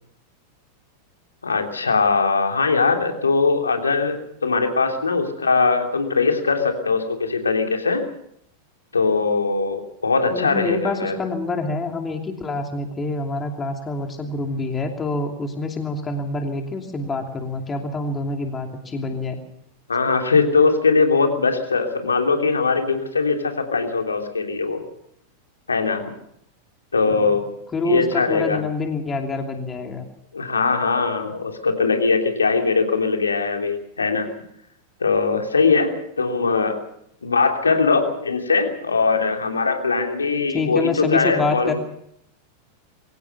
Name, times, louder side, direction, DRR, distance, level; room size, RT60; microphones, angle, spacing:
voice 1, 1.4-8.0 8.9-11.2 19.9-24.8 25.7-26.1 26.9-27.5 27.8-28.6 30.3-34.3 35.0-36.8 37.2-41.7, left 4 dB, 75° left, 4 dB, 3.1 m, -21 dB
voice 2, 10.3-19.4 27.1-27.2 27.7-30.0 40.5-41.7, left 3 dB, 20° left, 4 dB, 2.8 m, -26 dB
23.0 x 17.5 x 6.9 m, 0.73 s
figure-of-eight pair, 90°, 0 cm